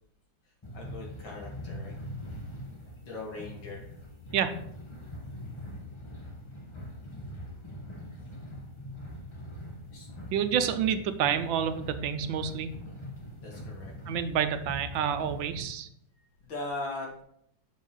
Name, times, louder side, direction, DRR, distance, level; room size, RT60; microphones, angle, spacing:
sound 1, 0.6-15.6, left 1 dB, 20° left, 0.9 m, -42 dB
voice 1, 0.7-1.9 3.0-3.9 9.9-10.1 13.4-13.9 16.4-17.2, left 2 dB, 80° left, -2 dB, 2.7 m, -39 dB
voice 2, 10.3-12.7 14.1-15.9, right 8 dB, 85° right, 9 dB, 1.4 m, -28 dB
7.2 x 6.2 x 3.8 m, 0.72 s
omnidirectional pair, 2.1 m